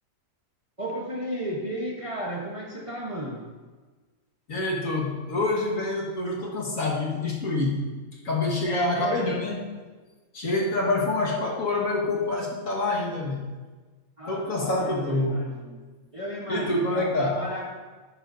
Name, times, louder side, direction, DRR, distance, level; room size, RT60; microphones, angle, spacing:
voice 1, 0.8-3.4 8.6-9.5 14.2-15.8 16.1-17.7, equal, 25° right, -2 dB, 1.0 m, -33 dB
voice 2, 4.5-7.9 8.2-9.6 10.3-13.5 14.3-15.5 16.5-17.4, left 2 dB, 60° left, -3 dB, 2.0 m, -26 dB
11.5 x 10.0 x 2.7 m, 1.3 s
omnidirectional pair, 1.6 m